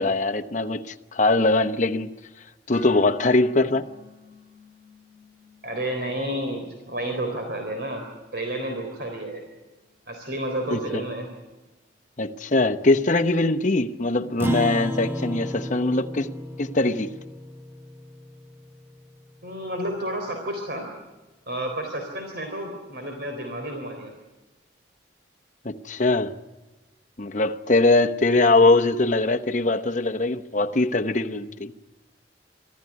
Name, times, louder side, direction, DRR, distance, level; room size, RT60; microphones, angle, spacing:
voice 1, 0.0-2.1 2.7-3.9 10.7-11.0 12.2-16.3 16.6-17.1 25.6-26.3 27.2-31.7, left 2 dB, 40° left, 0.9 m, -22 dB
sound 1, 2.7-10.8, left 3 dB, 30° right, 6.2 m, -52 dB
voice 2, 5.6-9.4 10.1-11.3 19.4-20.9 21.5-24.1, right 1 dB, 55° right, 3.8 m, -31 dB
Acoustic guitar, 14.4-19.1, left 1 dB, 10° right, 0.8 m, -33 dB
25.5 x 15.0 x 9.7 m
head